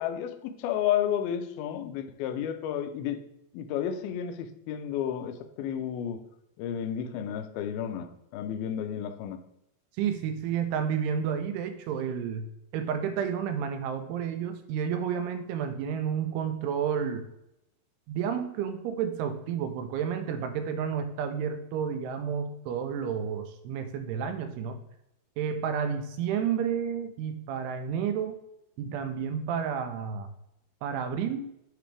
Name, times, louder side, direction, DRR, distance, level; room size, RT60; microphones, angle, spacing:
voice 1, 0.0-3.2 3.5-6.2 6.6-9.4, left 9 dB, 85° left, 8 dB, 2.2 m, -32 dB
voice 2, 10.0-12.5 12.7-17.3 18.1-24.8 25.4-28.4 28.8-30.3 30.8-31.5, right 7 dB, 80° right, 7 dB, 2.5 m, -31 dB
9.2 x 4.0 x 3.3 m, 0.83 s
omnidirectional pair, 4.9 m